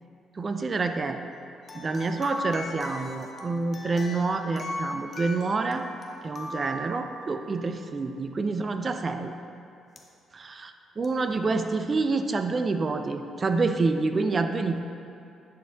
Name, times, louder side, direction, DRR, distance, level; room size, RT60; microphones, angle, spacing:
voice 1, 0.4-1.2 1.7-5.8 6.2-9.3 10.3-14.8, right 3 dB, 40° right, 7 dB, 0.4 m, -27 dB
sound 1, 1.6-7.6 10.0-10.1 11.0-11.1, left 1 dB, 45° left, 0.7 m, -38 dB
10.0 x 4.2 x 2.3 m, 2.7 s
hypercardioid pair, 50°, 0 cm